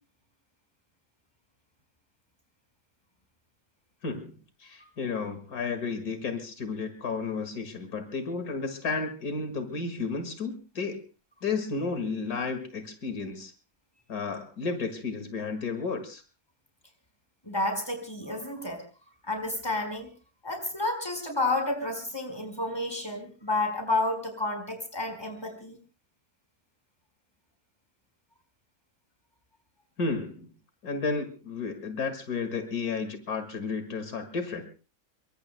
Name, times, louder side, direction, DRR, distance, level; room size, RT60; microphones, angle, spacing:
voice 1, 4.0-4.3 4.6-11.0 11.4-13.5 14.1-16.2 30.0-30.5 30.8-34.6, left 4 dB, 80° left, 8 dB, 2.4 m, -32 dB
voice 2, 17.4-18.8 19.2-20.1 20.4-25.8, left 2 dB, 15° left, 5 dB, 4.9 m, -30 dB
26.0 x 23.5 x 2.2 m, 0.35 s
omnidirectional pair, 1.5 m